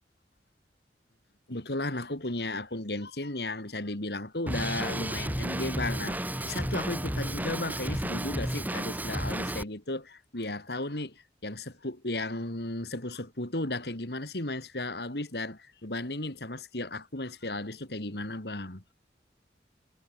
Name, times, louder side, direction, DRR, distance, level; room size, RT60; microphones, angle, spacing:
voice 1, 1.5-18.8, left 2 dB, 65° left, 3.3 m, -35 dB
Drum kit, 4.5-9.6, right 1 dB, 10° right, 1.9 m, -32 dB
head